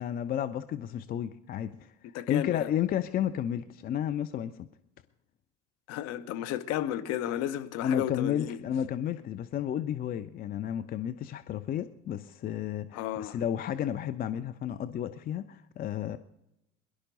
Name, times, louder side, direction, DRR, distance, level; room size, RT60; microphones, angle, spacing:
voice 1, 0.0-1.9 2.3-4.7 7.8-16.2, left 10 dB, 25° left, 0.5 m, -32 dB
voice 2, 2.1-2.7 5.9-8.6 12.9-13.4, left 11 dB, 45° left, 0.9 m, -33 dB
22.5 x 11.5 x 3.9 m
figure-of-eight pair, 70°, 37 cm